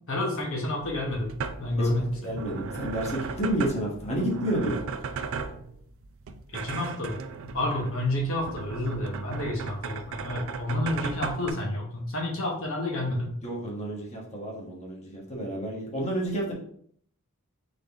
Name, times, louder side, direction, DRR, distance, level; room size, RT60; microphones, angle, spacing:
voice 1, 0.1-1.3 1.6-2.4 6.5-7.2 7.5-13.3, left 1 dB, 65° left, -1 dB, 1.0 m, -29 dB
sound 1, 0.8-11.5, right 5 dB, 65° right, 0.4 m, -37 dB
voice 2, 2.2-4.7 13.4-16.5, right 1 dB, 30° left, -3 dB, 1.3 m, -30 dB
3.9 x 3.8 x 3.4 m, 0.62 s
head